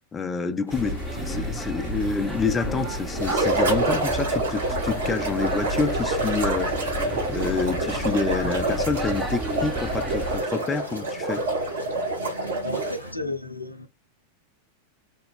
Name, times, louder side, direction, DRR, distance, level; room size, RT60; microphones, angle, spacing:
voice 1, 0.1-11.5, left 4 dB, 15° left, 0.4 m, -28 dB
sound 1, 0.7-10.4, equal, 5° right, 0.9 m, -32 dB
sound 2, 0.7-13.1, equal, 90° right, 1.1 m, -40 dB
sound 3, 3.2-13.1, right 2 dB, 65° right, 1.2 m, -27 dB
voice 2, 11.9-13.9, left 1 dB, 85° left, 0.5 m, -34 dB
3.7 x 2.3 x 3.6 m
figure-of-eight pair, 90°, 0 cm